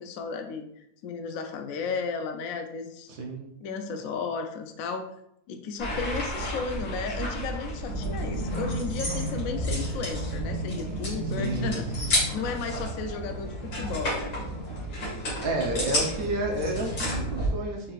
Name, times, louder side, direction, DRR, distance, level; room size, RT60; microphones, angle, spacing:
voice 1, 0.0-3.1 3.6-5.0 5.5-14.3, left 5 dB, 70° left, 5 dB, 0.8 m, -34 dB
voice 2, 3.1-3.5 11.4-11.9 14.9-15.1 15.4-17.9, right 2 dB, 60° right, 0 dB, 1.2 m, -30 dB
sound 1, 5.8-17.5, equal, 90° left, 2.5 m, -31 dB
5.1 x 4.0 x 2.4 m, 0.75 s
omnidirectional pair, 1.8 m